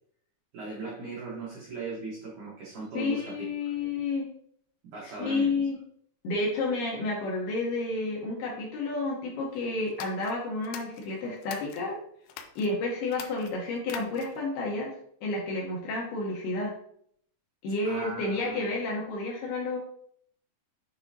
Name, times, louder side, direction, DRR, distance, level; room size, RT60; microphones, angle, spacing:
voice 1, 0.5-4.0 4.9-5.6 17.8-18.7, right 3 dB, 80° right, -4 dB, 1.8 m, -38 dB
voice 2, 2.9-4.3 5.0-5.8 6.2-12.0 12.6-14.9 15.2-16.7 17.6-19.8, left 3 dB, 70° left, -3 dB, 2.6 m, -30 dB
sound 1, 9.9-11.8 12.3-12.7 13.1-14.5, left 9 dB, 90° left, 2.4 m, -44 dB
9.0 x 4.1 x 2.8 m, 0.65 s
omnidirectional pair, 5.6 m